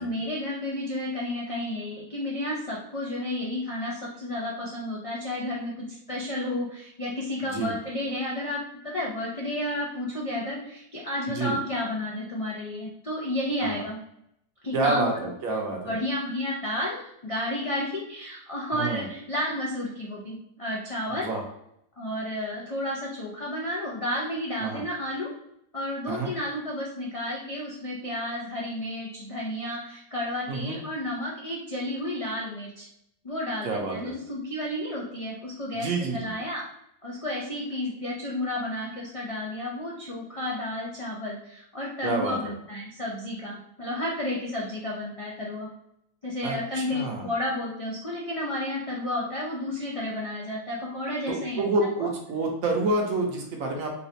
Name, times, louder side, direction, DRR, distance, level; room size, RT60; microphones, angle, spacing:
voice 1, 0.0-14.0 14.6-15.3 15.9-21.3 22.0-25.3 25.7-32.9 33.2-35.9 36.1-36.6 37.0-45.7 46.2-51.6 52.0-52.1, left 1 dB, 60° left, -4 dB, 0.3 m, -32 dB
voice 2, 14.7-16.0 18.7-19.1 21.1-21.4 24.6-24.8 26.1-26.3 30.5-30.8 33.6-34.1 35.7-36.3 42.0-42.5 46.4-47.3 51.3-53.9, right 3 dB, 70° right, 1 dB, 1.2 m, -28 dB
4.0 x 2.3 x 2.7 m, 0.75 s
omnidirectional pair, 1.5 m